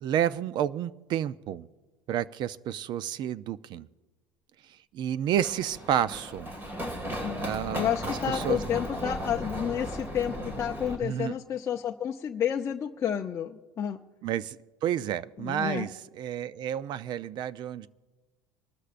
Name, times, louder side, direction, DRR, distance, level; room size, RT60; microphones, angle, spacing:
voice 1, 0.0-1.7 2.1-3.9 4.9-6.5 7.4-7.9 8.3-8.6 11.0-11.3 14.2-15.9 16.2-17.9, right 10 dB, 45° right, 0.5 m, -30 dB
Run, 5.3-10.9, equal, 20° right, 2.0 m, -36 dB
voice 2, 7.8-14.0 15.4-15.9, left 9 dB, 30° left, 0.6 m, -30 dB
26.0 x 13.0 x 2.5 m
cardioid pair, 140°, 10 cm